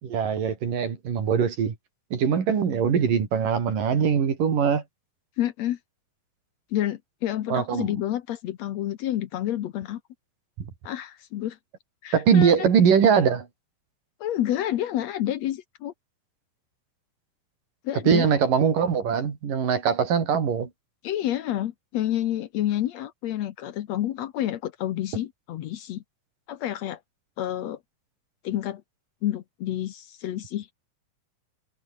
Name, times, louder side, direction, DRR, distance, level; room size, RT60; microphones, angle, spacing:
voice 1, 0.0-1.7 2.1-4.8 7.5-7.9 12.1-13.5 18.0-20.7, right 7 dB, 85° right, 5.0 m, -22 dB
voice 2, 5.4-5.8 6.7-10.0 10.8-11.6 12.0-12.5 14.2-15.9 17.8-18.3 21.0-26.0 26.5-27.0 27.4-27.8 28.4-28.8 29.2-30.7, left 12 dB, 65° left, 1.9 m, -29 dB
omnidirectional pair, 3.7 m